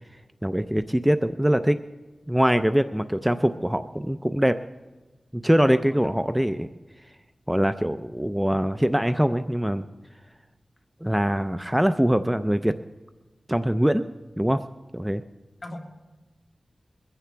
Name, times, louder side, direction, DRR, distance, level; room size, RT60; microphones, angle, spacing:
voice 1, 0.4-1.8 2.3-4.6 5.3-6.7 7.5-9.9 11.0-12.7 13.5-14.1 14.4-14.6 14.9-15.2, equal, 5° right, 10 dB, 0.4 m, -23 dB
voice 2, 5.8-6.1 15.6-15.8, left 1 dB, 50° left, 2 dB, 1.9 m, -39 dB
22.0 x 15.0 x 3.4 m, 1.2 s
wide cardioid pair, 100°, 0 cm